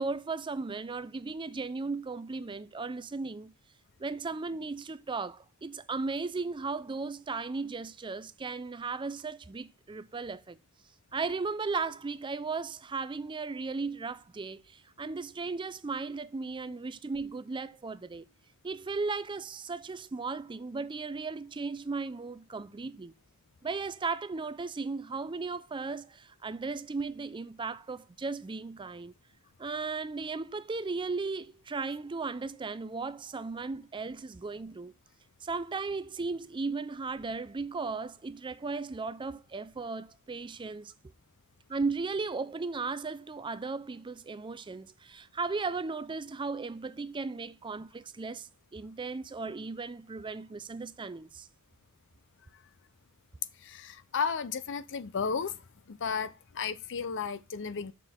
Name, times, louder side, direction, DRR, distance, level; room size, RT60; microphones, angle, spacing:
voice 1, 0.0-3.5 4.0-10.6 11.1-18.3 18.6-23.1 23.6-29.1 29.6-34.9 35.4-40.9 41.7-51.5, right 4 dB, 20° right, 0.4 m, -36 dB
voice 2, 53.6-55.5 55.9-57.9, left 5 dB, 55° left, 0.6 m, -33 dB
7.0 x 6.0 x 3.5 m
head